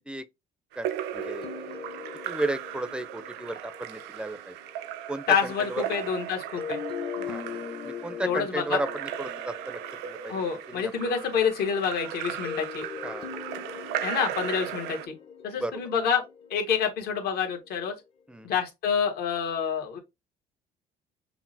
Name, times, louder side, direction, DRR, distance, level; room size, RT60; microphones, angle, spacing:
Splash splatter / Drip / Trickle dribble, 0.7-15.1, right 11 dB, 85° right, 0.4 m, -37 dB
voice 1, 0.8-1.4 2.3-4.5 5.1-5.8 7.3-7.4 7.8-11.1 13.0-13.3 15.6-15.8 18.3-18.5, right 2 dB, 5° right, 0.4 m, -34 dB
sound 1, 1.1-5.0 6.6-11.0 12.4-17.6, left 7 dB, 35° left, 0.7 m, -41 dB
voice 2, 5.3-6.8 8.2-8.8 10.3-12.8 14.0-15.1 15.4-16.2 16.5-17.9 18.4-20.0, left 7 dB, 70° left, 1.2 m, -27 dB
5.8 x 2.0 x 2.6 m
cardioid pair, 110°, 17 cm